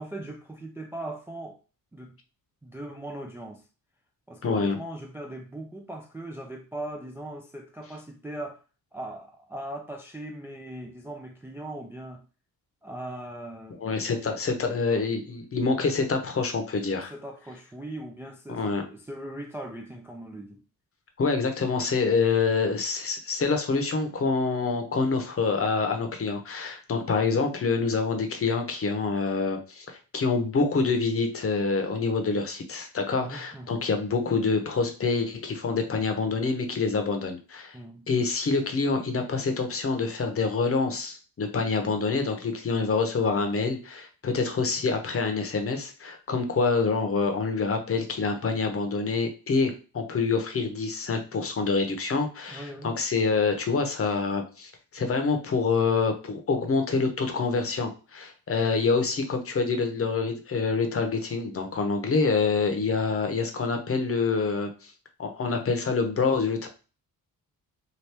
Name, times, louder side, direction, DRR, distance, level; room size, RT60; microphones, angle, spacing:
voice 1, 0.0-1.6 1.9-2.2 2.6-3.7 4.3-8.6 8.9-12.2 12.8-14.3 14.6-14.8 17.1-20.6 33.2-33.8 37.7-38.1 52.5-52.9, right 1 dB, 5° right, 0.3 m, -39 dB
voice 2, 4.4-4.8 13.8-17.1 18.5-18.8 21.2-37.8 38.1-64.9 65.2-66.7, left 4 dB, 40° left, 0.8 m, -26 dB
2.9 x 2.6 x 3.3 m
cardioid pair, 90°, 36 cm